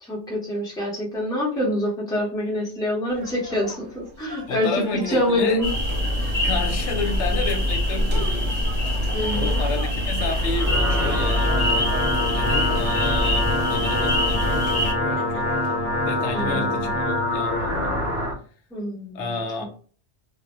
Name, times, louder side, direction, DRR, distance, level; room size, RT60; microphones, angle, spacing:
voice 1, 0.0-5.7 9.1-9.6 16.3-16.9 18.7-19.2 19.6-19.7, left 1 dB, 5° left, 0.6 m, -26 dB
sound 1, 3.1-16.5, right 4 dB, 80° right, 0.9 m, -43 dB
voice 2, 4.5-5.6 6.4-8.7 9.3-11.9 12.3-15.5 15.9-18.0 19.1-19.7, left 3 dB, 85° left, 0.9 m, -31 dB
sound 2, 5.6-14.9, left 1 dB, 40° right, 0.8 m, -24 dB
sound 3, 10.4-18.3, left 1 dB, 60° left, 0.9 m, -25 dB
2.1 x 2.0 x 2.9 m
omnidirectional pair, 1.2 m